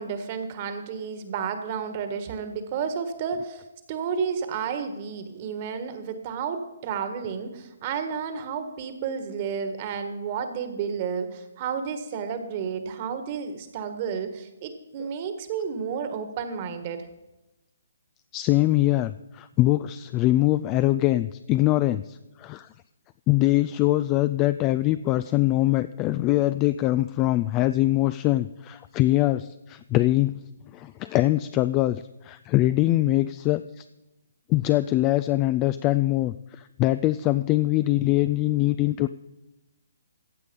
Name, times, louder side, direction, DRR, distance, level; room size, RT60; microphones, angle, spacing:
voice 1, 0.0-17.0, right 6 dB, 35° right, 8 dB, 1.6 m, -31 dB
voice 2, 18.3-22.7 23.3-30.3 30.7-33.8 34.5-39.1, left 16 dB, 25° left, 13 dB, 0.3 m, -23 dB
15.0 x 8.1 x 5.4 m, 0.98 s
figure-of-eight pair, 140°, 0 cm